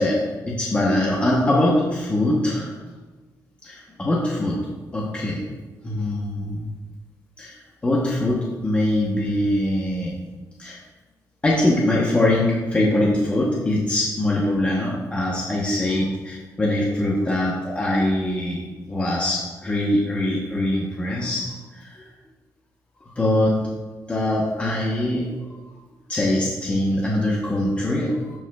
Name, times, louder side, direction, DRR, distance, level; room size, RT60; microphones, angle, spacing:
voice 1, 0.0-2.7 3.6-4.6 4.9-5.4 5.8-6.7 7.4-10.1 10.6-10.8 11.4-18.6 18.9-22.1 23.0-23.6 24.1-25.3 26.1-28.4, left 1 dB, 15° left, -5 dB, 0.9 m, -23 dB
14.5 x 4.9 x 2.3 m, 1.3 s
wide cardioid pair, 170°, 7 cm